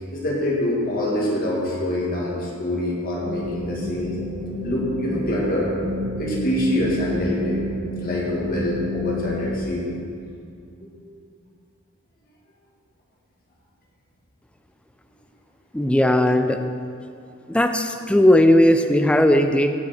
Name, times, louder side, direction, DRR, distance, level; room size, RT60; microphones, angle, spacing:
voice 1, 0.1-4.2 4.6-5.7 6.2-7.6 8.0-9.9 10.8-11.0, left 1 dB, 40° left, -4 dB, 2.1 m, -25 dB
sound 1, 3.2-9.7, left 1 dB, 45° right, 1.9 m, -30 dB
voice 2, 15.7-16.6 17.5-19.7, left 1 dB, 5° left, 6 dB, 0.4 m, -17 dB
15.5 x 5.8 x 4.3 m, 2.4 s
head